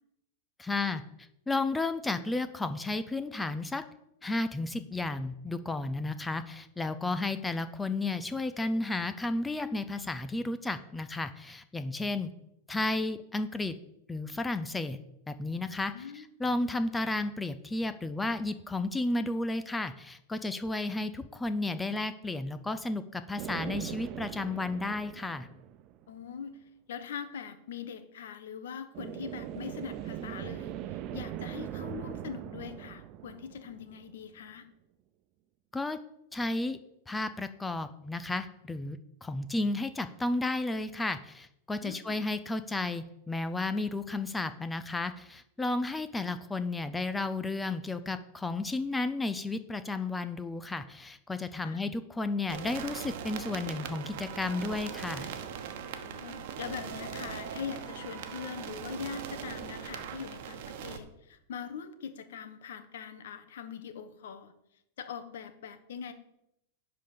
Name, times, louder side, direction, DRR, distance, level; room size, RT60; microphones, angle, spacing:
voice 1, 0.6-1.0 1.5-3.8 4.2-12.3 12.7-13.8 14.1-15.0 15.3-25.5 35.7-36.0 36.3-36.8 37.1-55.3, left 2 dB, 10° left, 11 dB, 0.5 m, -33 dB
voice 2, 15.9-16.3 26.1-26.6 26.9-30.7 31.1-34.6 41.8-42.2 51.6-51.8 55.9-64.5 65.0-66.1, left 7 dB, 80° left, 9 dB, 1.1 m, -42 dB
sound 1, 23.4-26.2 28.9-34.4, right 12 dB, 45° right, 0.5 m, -40 dB
sound 2, 52.5-61.0, right 7 dB, 65° right, 1.0 m, -40 dB
10.5 x 3.9 x 6.7 m, 0.81 s
hypercardioid pair, 130°, 0 cm